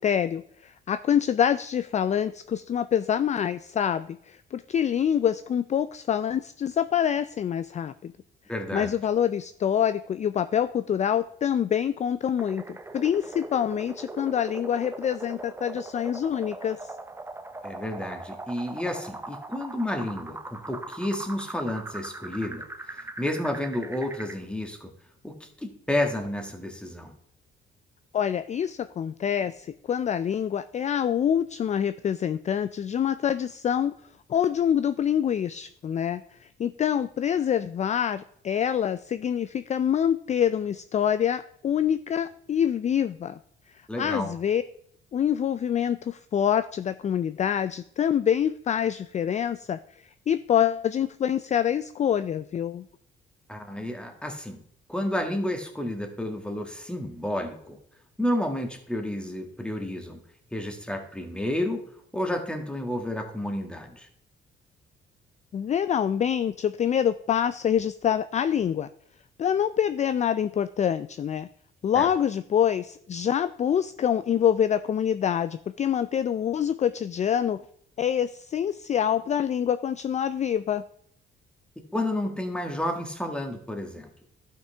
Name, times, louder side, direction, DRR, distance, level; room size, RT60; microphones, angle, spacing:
voice 1, 0.0-8.1 8.7-16.9 28.1-33.9 34.3-43.4 44.0-44.6 45.1-49.8 50.3-52.8 65.5-68.9 69.4-71.5 71.8-77.6 78.0-80.8, left 9 dB, 35° left, 13 dB, 0.4 m, -26 dB
voice 2, 8.5-8.9 17.6-22.6 23.2-24.9 25.2-27.1 43.9-44.3 53.5-54.6 54.9-57.8 58.2-60.2 60.5-61.8 62.1-64.1 71.9-72.1 81.9-84.1, left 1 dB, 5° left, 5 dB, 1.6 m, -31 dB
sound 1, 12.4-24.4, right 2 dB, 10° right, 0.7 m, -40 dB
12.0 x 5.8 x 3.4 m, 0.66 s
cardioid pair, 90°, 20 cm